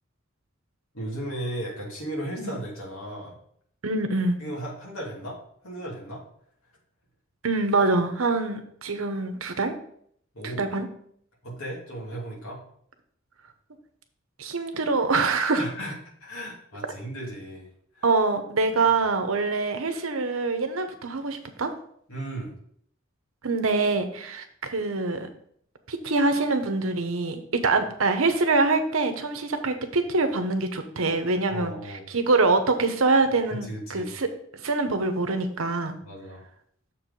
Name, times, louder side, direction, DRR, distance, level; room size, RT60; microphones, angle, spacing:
voice 1, 0.9-3.4 4.4-5.4 5.6-6.2 10.3-10.7 11.4-12.6 15.6-17.7 17.9-18.0 22.1-22.5 31.5-32.1 33.7-34.1 36.0-36.4, right 1 dB, 90° left, -3 dB, 2.8 m, -35 dB
voice 2, 3.8-4.4 7.4-9.7 10.6-10.9 14.4-15.7 18.0-21.7 23.4-25.3 25.9-31.7 32.1-34.3 34.6-36.0, right 3 dB, 85° right, 7 dB, 1.0 m, -24 dB
6.9 x 4.7 x 5.3 m, 0.65 s
head